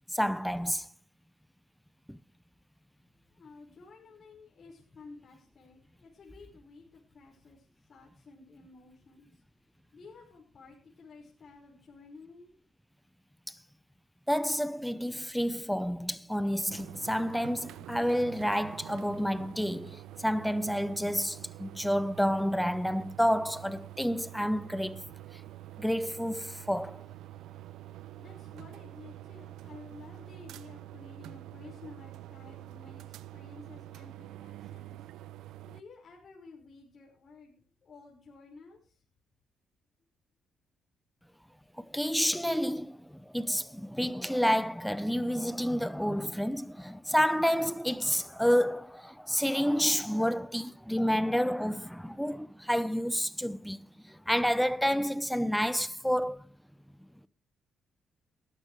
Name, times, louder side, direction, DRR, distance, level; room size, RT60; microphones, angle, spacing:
voice 1, 0.1-0.9 2.1-2.2 13.5-13.6 14.3-25.0 25.8-27.0 41.8-56.4, equal, ahead, 0.7 m, -29 dB
voice 2, 3.3-9.4 9.9-12.5 28.1-35.1 35.6-39.0, left 4 dB, 45° left, 5.1 m, -53 dB
sound 1, 16.7-35.8, right 14 dB, 85° right, 0.6 m, -47 dB
18.0 x 12.5 x 3.2 m
cardioid pair, 90°, 0 cm